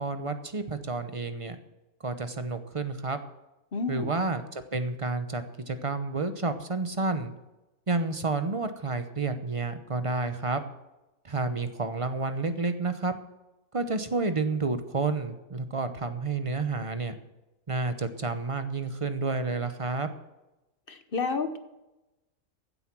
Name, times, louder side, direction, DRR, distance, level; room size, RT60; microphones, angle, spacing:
voice 1, 0.0-1.6 2.0-3.2 3.9-7.3 7.9-10.6 11.2-13.1 13.7-17.2 17.7-20.1, right 3 dB, 30° right, 9 dB, 0.6 m, -30 dB
voice 2, 3.7-4.1 20.9-21.6, left 4 dB, 45° left, 9 dB, 0.9 m, -30 dB
15.5 x 8.0 x 6.0 m, 0.99 s
omnidirectional pair, 1.6 m